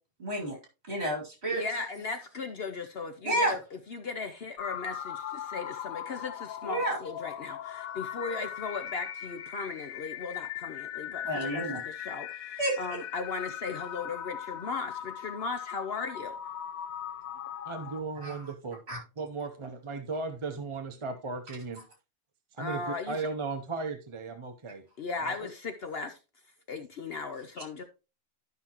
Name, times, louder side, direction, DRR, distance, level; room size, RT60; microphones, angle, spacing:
voice 1, 0.2-0.5 0.9-1.6 3.2-3.5 6.6-7.0 8.3-8.4 11.2-11.8 12.6-12.8 18.2-18.4 18.9-19.0, right 1 dB, 50° right, 3.0 m, -30 dB
voice 2, 1.5-3.6 3.9-16.4 22.6-23.2 25.0-26.2 26.7-27.8, left 4 dB, 55° left, 0.8 m, -37 dB
sound 1, 4.6-18.0, left 10 dB, 85° left, 1.1 m, -39 dB
voice 3, 17.7-18.8 19.2-21.8 22.5-24.8 25.2-25.5, right 4 dB, 30° right, 0.5 m, -36 dB
12.0 x 5.7 x 2.9 m
omnidirectional pair, 1.4 m